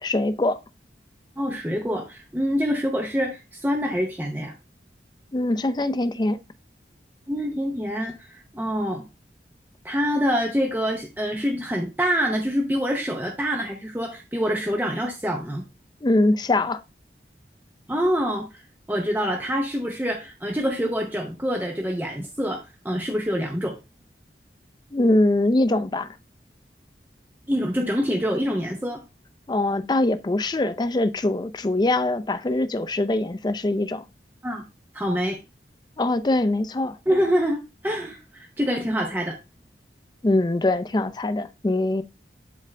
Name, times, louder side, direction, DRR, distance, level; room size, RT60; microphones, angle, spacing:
voice 1, 0.0-0.6 5.3-6.4 16.0-16.8 24.9-26.2 29.5-34.0 36.0-37.0 40.2-42.0, left 2 dB, 25° left, 0.4 m, -23 dB
voice 2, 1.4-4.5 7.3-9.1 9.8-15.6 17.9-23.8 27.5-29.0 34.4-34.6 34.9-35.4 37.1-39.4, equal, 10° right, 0.7 m, -26 dB
11.0 x 3.6 x 3.3 m
head